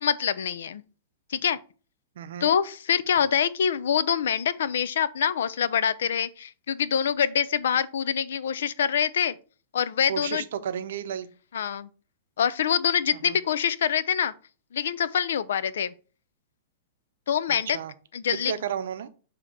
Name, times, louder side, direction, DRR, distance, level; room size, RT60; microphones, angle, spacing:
voice 1, 0.0-0.8 1.3-1.6 2.4-9.3 9.7-10.4 11.5-11.9 12.4-14.3 14.7-15.9 17.3-17.8 18.1-18.5, left 8 dB, 80° left, 0.5 m, -25 dB
voice 2, 2.2-2.5 10.1-11.3 13.2-13.4 17.7-17.9 18.3-19.1, right 8 dB, 75° right, 0.7 m, -32 dB
6.9 x 2.9 x 4.9 m
hypercardioid pair, 150°, 0 cm